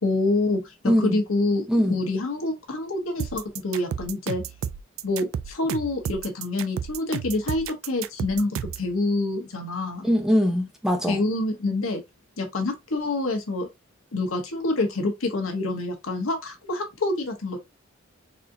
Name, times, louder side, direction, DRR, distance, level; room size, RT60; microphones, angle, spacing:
voice 1, 0.0-4.4 5.0-10.1 11.1-12.0 12.4-13.7 14.1-17.6, left 2 dB, 85° left, 1.1 m, -27 dB
voice 2, 0.8-1.2 1.7-2.0 10.0-11.2, equal, ahead, 0.7 m, -22 dB
sound 1, 3.2-8.9, right 8 dB, 80° right, 0.3 m, -32 dB
4.1 x 2.6 x 2.6 m
head